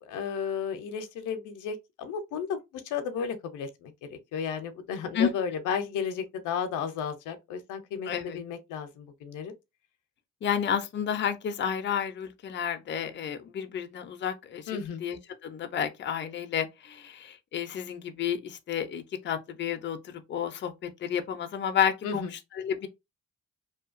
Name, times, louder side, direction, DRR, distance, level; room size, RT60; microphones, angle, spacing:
voice 1, 0.0-9.5 14.7-15.0 22.0-22.3, left 6 dB, 85° left, 0.6 m, -33 dB
voice 2, 8.1-8.4 10.4-14.6 15.0-22.3 22.6-22.9, left 8 dB, 40° left, 0.5 m, -31 dB
2.7 x 2.2 x 2.4 m
cardioid pair, 90°, 30 cm